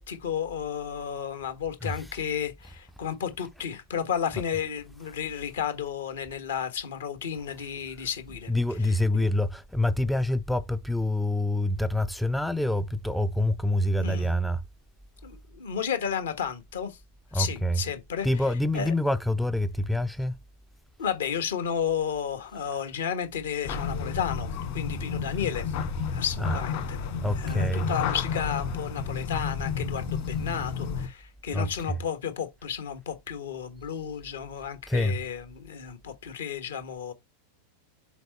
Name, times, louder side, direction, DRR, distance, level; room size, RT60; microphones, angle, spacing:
voice 1, 0.0-8.5 8.8-9.3 14.0-14.3 15.2-17.0 17.3-18.3 18.7-18.9 21.0-25.7 26.1-27.0 27.4-37.1, left 8 dB, 60° left, 1.4 m, -32 dB
voice 2, 8.5-14.6 17.3-17.8 18.2-20.4 26.4-26.6 27.2-27.9 31.5-32.0 34.9-35.2, left 1 dB, ahead, 0.4 m, -26 dB
sound 1, 23.6-31.1, left 6 dB, 45° left, 2.1 m, -31 dB
6.9 x 4.2 x 4.4 m
figure-of-eight pair, 90°, 0 cm